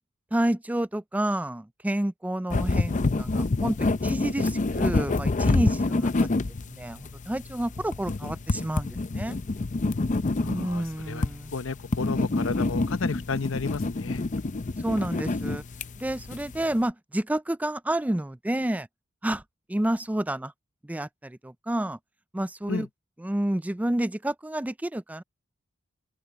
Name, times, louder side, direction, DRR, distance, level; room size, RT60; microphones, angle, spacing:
voice 1, 0.3-6.4 6.7-9.4 10.4-11.5 14.8-15.6 16.0-18.9 19.2-19.4 19.7-20.5 20.8-22.0 22.3-22.9 23.2-25.2, right 1 dB, 5° right, 0.4 m, -29 dB
sound 1, 2.5-16.8, left 2 dB, 40° left, 0.6 m, -27 dB
voice 2, 10.4-11.2 11.5-14.2 22.7-22.9, left 4 dB, 70° left, 0.8 m, -32 dB
open air
head